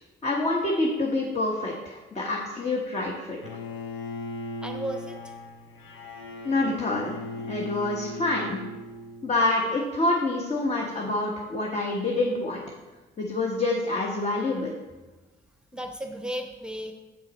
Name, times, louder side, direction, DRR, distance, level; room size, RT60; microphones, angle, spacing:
voice 1, 0.2-3.4 6.4-8.6 9.2-12.6 13.2-14.7, left 2 dB, 35° left, -1 dB, 1.1 m, -27 dB
Bowed string instrument, 3.4-9.5, left 2 dB, 85° left, 0.9 m, -38 dB
voice 2, 4.6-5.4 15.7-16.9, equal, 5° right, 4 dB, 0.9 m, -34 dB
6.9 x 6.2 x 4.2 m, 1.2 s
cardioid pair, 90°, 20 cm